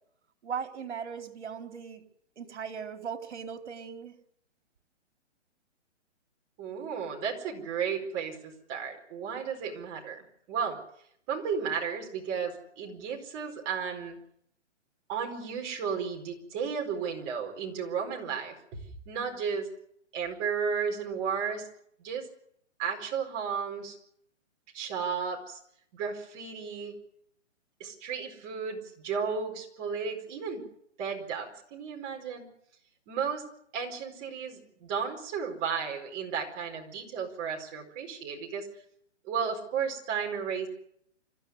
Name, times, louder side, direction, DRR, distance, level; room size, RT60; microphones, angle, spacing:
voice 1, 0.4-2.0 2.4-4.1, right 6 dB, 65° right, 6 dB, 3.9 m, -38 dB
voice 2, 6.6-10.8 11.3-14.2 15.1-18.5 19.1-19.7 20.1-21.7 22.0-22.3 22.8-24.0 24.7-25.6 25.9-26.9 27.8-30.6 31.0-32.4 33.1-33.4 33.7-38.7 39.2-40.7, right 6 dB, 20° right, 1 dB, 4.6 m, -33 dB
27.0 x 14.5 x 9.6 m, 0.71 s
hypercardioid pair, 165°, 36 cm